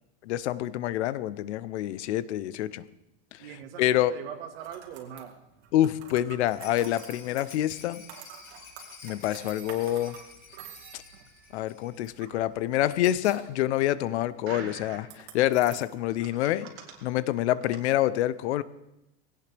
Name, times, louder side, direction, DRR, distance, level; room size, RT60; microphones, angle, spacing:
voice 1, 0.2-2.8 3.3-3.4 3.8-4.1 5.7-8.0 9.0-10.2 10.9-11.0 11.5-16.7 17.0-18.6, left 13 dB, 75° left, 17 dB, 0.8 m, -27 dB
voice 2, 3.4-5.4 8.6-8.7 12.3-12.4, right 9 dB, 60° right, 6 dB, 1.8 m, -42 dB
sound 1, 4.5-17.8, right 8 dB, 75° right, 2.4 m, -48 dB
Rattle, 6.5-12.2 12.4-12.5 12.8-12.9, left 5 dB, 25° left, 3.4 m, -50 dB
20.5 x 17.0 x 3.4 m, 0.88 s
supercardioid pair, 180°, 34 cm